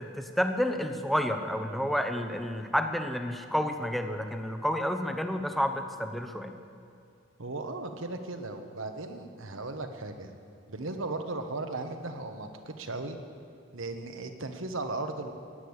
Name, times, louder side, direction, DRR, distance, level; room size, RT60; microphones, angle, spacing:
voice 1, 0.0-6.5, equal, ahead, 6 dB, 0.8 m, -30 dB
voice 2, 7.4-10.3 10.7-13.2 13.7-15.3, right 2 dB, 70° right, 6 dB, 1.3 m, -36 dB
16.0 x 10.5 x 8.1 m, 2.5 s
head